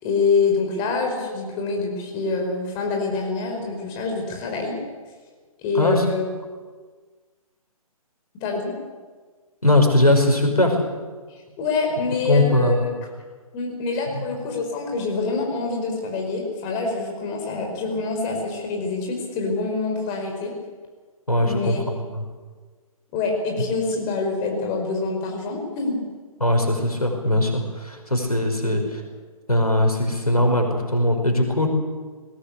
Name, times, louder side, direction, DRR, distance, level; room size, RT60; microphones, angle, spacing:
voice 1, 0.0-4.8 5.6-6.2 8.3-8.7 11.3-12.9 13.5-20.5 21.4-21.8 23.1-26.0 28.6-28.8, left 4 dB, 25° left, 2 dB, 4.9 m, -26 dB
voice 2, 9.6-10.8 12.3-12.8 14.1-14.2 21.3-22.2 26.4-29.0 29.5-31.7, left 1 dB, 90° left, 3 dB, 5.5 m, -20 dB
20.5 x 17.0 x 8.5 m, 1.4 s
figure-of-eight pair, 135°, 19 cm